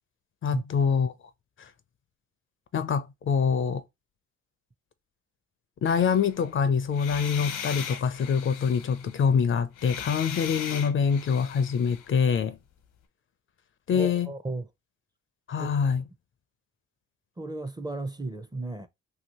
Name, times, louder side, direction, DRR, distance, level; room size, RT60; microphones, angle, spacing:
voice 1, 0.4-1.1 1.6-1.7 2.7-3.8 5.8-12.6 13.9-14.3 15.5-16.0, left 6 dB, 45° left, 0.5 m, -25 dB
sound 1, 5.9-6.5 6.9-9.3 9.8-12.1, left 8 dB, 85° left, 0.9 m, -39 dB
voice 2, 13.9-14.7 15.6-15.7 17.4-18.9, right 2 dB, 15° right, 0.5 m, -34 dB
3.0 x 2.8 x 2.9 m
cardioid pair, 90°, 30 cm